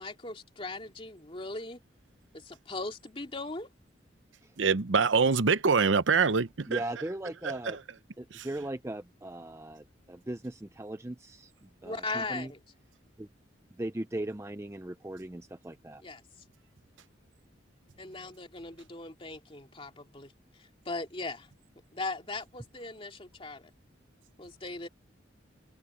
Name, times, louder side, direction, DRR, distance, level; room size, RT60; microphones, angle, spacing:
voice 1, 0.0-1.8 2.3-3.7 11.8-12.6 16.0-16.2 18.0-20.3 20.6-21.5 21.9-23.7 24.4-24.9, left 3 dB, 30° left, 2.5 m, -39 dB
voice 2, 4.6-6.8 7.4-7.8 8.3-8.5, right 5 dB, 80° right, 0.8 m, -25 dB
voice 3, 6.7-7.8 8.2-12.5 13.2-13.3 13.8-16.0, right 1 dB, 15° right, 0.6 m, -38 dB
head